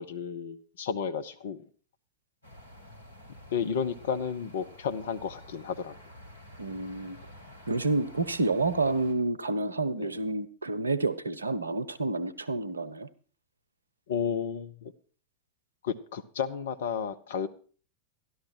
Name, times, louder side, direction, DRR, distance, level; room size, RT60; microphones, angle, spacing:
voice 1, 0.0-1.6 3.5-5.9 10.0-10.1 14.1-14.9 15.8-17.5, left 7 dB, 60° left, 9 dB, 0.9 m, -32 dB
sound 1, 2.4-9.1, left 1 dB, 85° left, 2.0 m, -50 dB
voice 2, 6.6-7.2 7.7-13.1, right 2 dB, 75° right, 16 dB, 0.8 m, -29 dB
13.0 x 11.0 x 4.5 m, 0.41 s
figure-of-eight pair, 90°, 0 cm